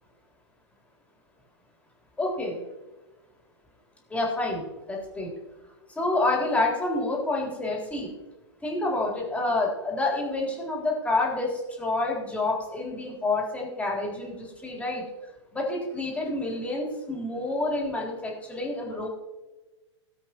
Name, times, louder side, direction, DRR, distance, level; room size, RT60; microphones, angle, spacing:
voice 1, 2.2-2.6 4.1-5.3 5.9-8.1 8.6-15.0 15.5-19.1, left 2 dB, 10° left, -2 dB, 3.7 m, -28 dB
19.0 x 7.9 x 3.1 m, 1.1 s
hypercardioid pair, 115°, 16 cm